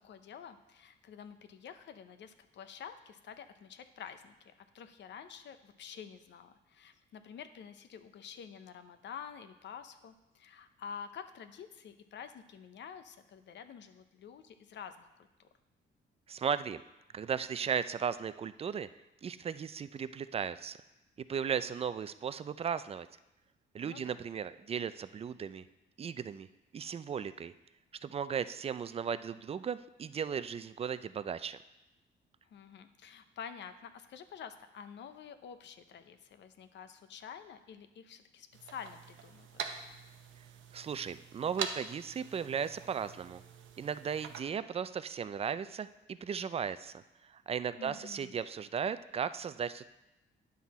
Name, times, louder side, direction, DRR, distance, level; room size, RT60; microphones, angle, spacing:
voice 1, 0.0-15.3 23.8-24.2 32.4-39.6 47.8-48.4, left 7 dB, 65° left, 10 dB, 0.7 m, -49 dB
voice 2, 16.3-16.8 17.1-18.9 19.2-20.8 21.3-23.1 23.7-25.7 26.0-26.5 26.7-27.5 28.0-31.6 40.7-43.4 43.8-49.9, right 7 dB, 30° right, 14 dB, 0.4 m, -36 dB
sound 1, 38.5-44.4, right 7 dB, 75° right, 0.8 m, -44 dB
9.6 x 6.0 x 4.2 m, 0.96 s
cardioid pair, 90°, 20 cm